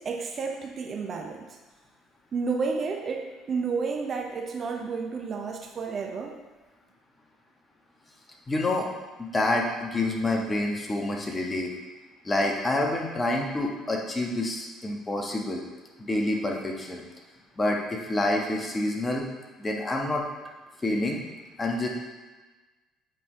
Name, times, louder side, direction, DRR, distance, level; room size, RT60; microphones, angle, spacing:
voice 1, 0.0-1.5 2.3-6.4, right 4 dB, 40° right, 3 dB, 0.6 m, -31 dB
voice 2, 8.5-8.9 9.2-11.7 12.2-15.6 16.0-17.0 17.6-19.2 19.6-20.2 20.8-21.2 21.6-21.9, left 2 dB, 20° left, 0 dB, 1.3 m, -27 dB
7.5 x 5.3 x 3.2 m, 1.2 s
figure-of-eight pair, 55°, 0 cm